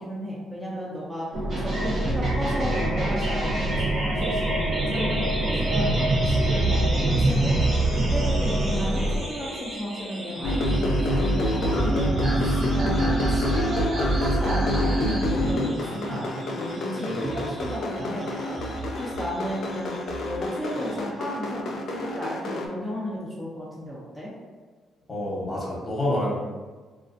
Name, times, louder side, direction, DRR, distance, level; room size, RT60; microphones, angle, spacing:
voice 1, 0.0-5.9 6.2-7.6 7.9-18.6 18.9-20.0 20.2-24.3, equal, 10° right, -7 dB, 0.6 m, -33 dB
sound 1, 1.3-9.2, right 1 dB, 80° right, 0.5 m, -27 dB
sound 2, 1.5-21.0, right 2 dB, 50° right, 0.9 m, -29 dB
sound 3, 10.4-22.7, equal, 70° left, 0.4 m, -26 dB
voice 2, 25.1-26.4, left 1 dB, 25° left, -5 dB, 0.9 m, -27 dB
2.3 x 2.3 x 2.5 m, 1.4 s
cardioid pair, 90°, 0 cm